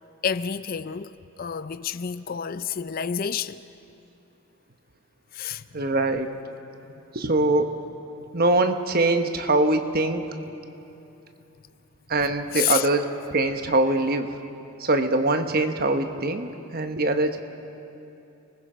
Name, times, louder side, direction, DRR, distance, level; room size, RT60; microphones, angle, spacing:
voice 1, 0.2-3.6 5.3-5.6 12.5-12.9, left 8 dB, 40° left, 0.4 m, -29 dB
voice 2, 5.7-6.3 7.1-7.8 8.3-10.2 12.1-14.3 14.8-17.4, right 2 dB, 45° right, 1.2 m, -23 dB
29.5 x 20.0 x 5.1 m
head